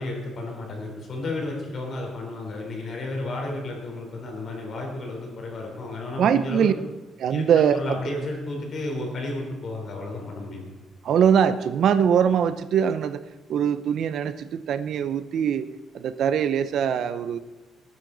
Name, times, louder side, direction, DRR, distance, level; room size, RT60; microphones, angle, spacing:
voice 1, 0.0-6.7 7.3-10.6, left 2 dB, 40° left, 1 dB, 3.5 m, -32 dB
voice 2, 6.2-6.7 7.2-8.1 11.0-13.2 13.5-15.7 15.9-17.4, right 8 dB, 55° right, 12 dB, 0.6 m, -22 dB
19.0 x 9.6 x 4.0 m, 1.2 s
cardioid pair, 170°, 0 cm